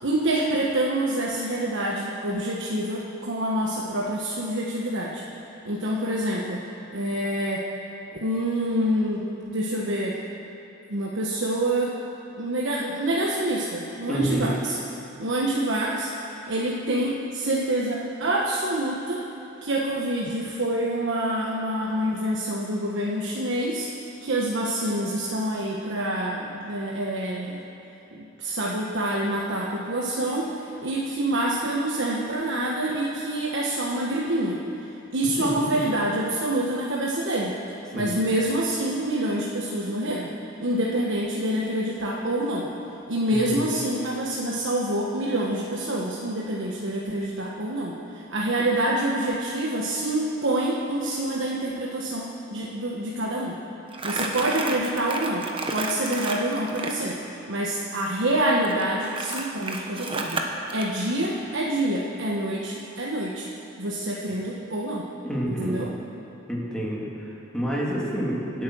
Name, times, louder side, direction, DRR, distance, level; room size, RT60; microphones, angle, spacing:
voice 1, 0.0-5.2 5.6-6.6 6.9-7.7 8.2-10.2 10.9-11.9 12.4-14.8 15.2-16.1 16.5-19.2 19.6-23.9 24.2-27.6 28.1-34.6 35.1-37.6 37.9-40.3 40.6-42.7 43.1-53.5 54.0-55.4 55.7-57.2 57.5-60.4 60.7-63.5 63.8-65.0 65.5-65.9, right 1 dB, 65° right, -3 dB, 1.3 m, -26 dB
voice 2, 14.1-14.5 35.4-35.8 37.9-38.2 43.3-43.6 65.2-65.8 66.5-68.6, equal, 5° left, -5 dB, 2.8 m, -29 dB
Crumpling crinkling, 53.9-57.0 58.6-60.9, right 3 dB, 25° right, 1.2 m, -31 dB
25.5 x 8.6 x 6.3 m, 2.9 s
head